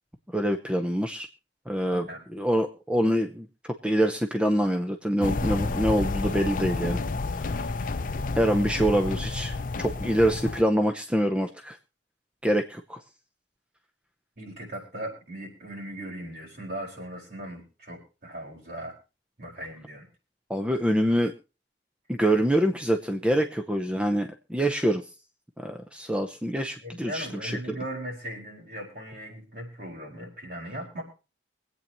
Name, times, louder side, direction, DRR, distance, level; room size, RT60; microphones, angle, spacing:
voice 1, 0.3-1.3 1.7-2.1 2.3-3.5 3.8-7.0 7.4-7.7 8.3-11.8 12.4-13.0 20.5-21.3 22.1-25.0 25.6-27.8, equal, 5° right, 6 dB, 0.7 m, -25 dB
voice 2, 1.9-2.2 14.4-18.9 19.4-20.1 26.8-31.0, right 1 dB, 55° right, -2 dB, 5.1 m, -38 dB
sound 1, 5.2-10.6, left 3 dB, 45° left, 0.5 m, -30 dB
24.5 x 8.5 x 3.0 m, 0.32 s
head